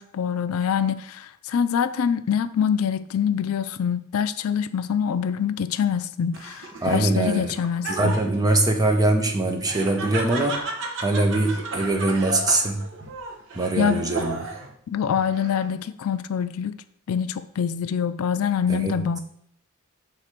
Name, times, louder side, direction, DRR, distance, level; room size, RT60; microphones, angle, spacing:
voice 1, 0.0-8.2 13.8-14.0 14.9-16.8 17.1-19.2, left 7 dB, 75° left, 0.4 m, -25 dB
Laughter, 6.3-14.7 15.2-15.8, right 2 dB, 60° right, 1.0 m, -34 dB
voice 2, 6.8-7.5 7.9-10.6 11.0-12.8 13.5-14.5 18.7-19.0, right 2 dB, 15° right, 0.8 m, -22 dB
6.5 x 4.0 x 4.4 m
head